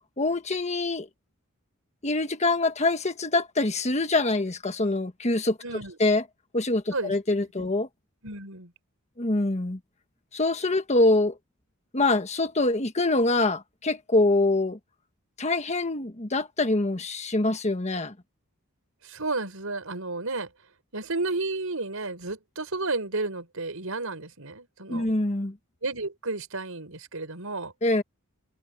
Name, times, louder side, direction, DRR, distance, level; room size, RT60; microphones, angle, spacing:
voice 1, 0.2-1.1 2.0-5.6 6.0-6.2 6.5-7.9 9.2-9.8 10.3-11.4 11.9-14.8 15.4-18.1 24.9-25.6 27.8-28.0, left 2 dB, 35° left, 1.5 m, -24 dB
voice 2, 5.6-6.0 6.9-7.1 8.2-8.7 19.0-20.5 20.9-25.1 25.8-27.7, right 3 dB, 85° right, 4.9 m, -32 dB
head